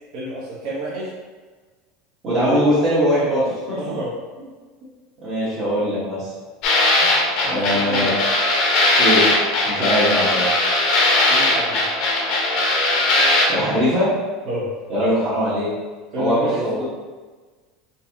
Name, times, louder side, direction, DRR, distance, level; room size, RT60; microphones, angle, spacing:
voice 1, 0.1-1.1 2.4-2.7 3.8-4.5 4.8-4.9 7.4-8.2 11.3-11.8 14.4-14.7 16.1-16.8, equal, 45° right, -8 dB, 0.9 m, -29 dB
voice 2, 2.2-3.8 5.2-6.3 7.4-8.1 9.0-9.3 9.7-10.5 13.5-14.1 14.9-15.7 16.2-16.8, equal, 25° right, -13 dB, 1.1 m, -21 dB
sound 1, 6.6-13.5, left 2 dB, 45° left, 0.7 m, -19 dB
4.0 x 2.7 x 2.8 m, 1.4 s
supercardioid pair, 170°, 0 cm